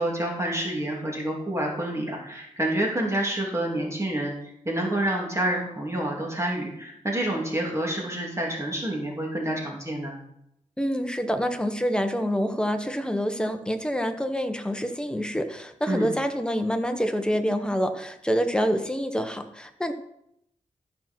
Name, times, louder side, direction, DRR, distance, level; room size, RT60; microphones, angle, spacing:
voice 1, 0.0-4.3 4.6-10.1 15.9-16.1, right 1 dB, 20° right, -2 dB, 2.8 m, -28 dB
voice 2, 10.8-19.9, equal, 5° left, 6 dB, 1.2 m, -27 dB
13.5 x 6.0 x 4.5 m, 0.78 s
wide cardioid pair, 70°, 13 cm